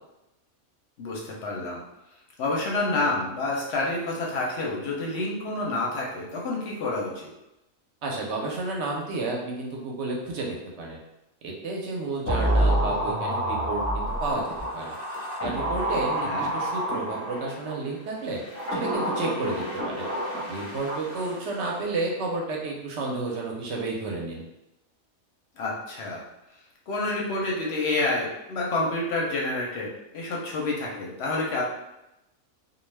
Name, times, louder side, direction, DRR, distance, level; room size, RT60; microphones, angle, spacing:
voice 1, 1.0-1.8 2.4-7.3 16.2-16.5 25.6-26.2 26.9-31.6, left 2 dB, 60° left, -2 dB, 0.7 m, -28 dB
voice 2, 8.0-11.0 11.4-14.4 14.7-14.9 15.4-18.4 18.7-20.1 20.5-24.4, right 3 dB, 65° right, -1 dB, 0.8 m, -31 dB
sound 1, 12.3-17.7 18.4-21.6 21.9-22.0, right 1 dB, 15° left, 0.6 m, -28 dB
2.3 x 2.1 x 3.2 m, 0.92 s
omnidirectional pair, 1.4 m